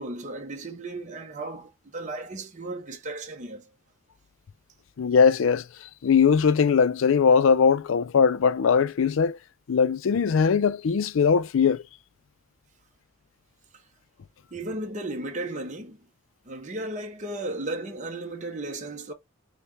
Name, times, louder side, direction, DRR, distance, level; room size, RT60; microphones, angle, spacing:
voice 1, 0.0-3.7 13.7-13.9 14.5-16.1 16.4-19.1, right 2 dB, 35° right, 0.7 m, -35 dB
voice 2, 5.0-5.6 6.0-9.4 9.7-11.8, left 6 dB, 65° left, 0.4 m, -20 dB
5.5 x 2.1 x 3.1 m
head